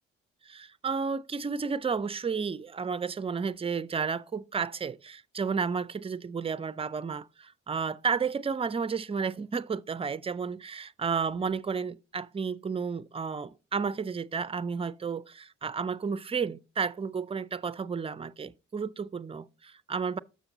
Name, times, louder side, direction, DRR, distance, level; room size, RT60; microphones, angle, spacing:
voice 1, 0.4-20.2, right 5 dB, 20° right, 0.4 m, -32 dB
7.0 x 6.1 x 3.9 m
hypercardioid pair, 45°, 31 cm